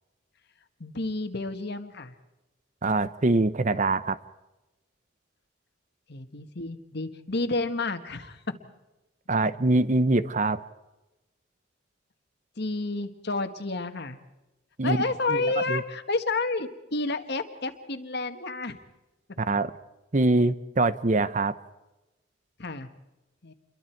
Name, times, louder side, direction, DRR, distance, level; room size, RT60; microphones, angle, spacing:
voice 1, 0.8-2.1 6.1-8.4 12.6-14.2 14.8-18.8 22.6-22.9 23.4-23.5, left 3 dB, 55° left, 9 dB, 1.7 m, -30 dB
voice 2, 2.8-4.2 9.3-10.6 14.8-15.8 19.4-19.7 20.1-21.6, right 2 dB, 40° right, 15 dB, 0.8 m, -24 dB
29.0 x 23.0 x 4.6 m, 1.0 s
head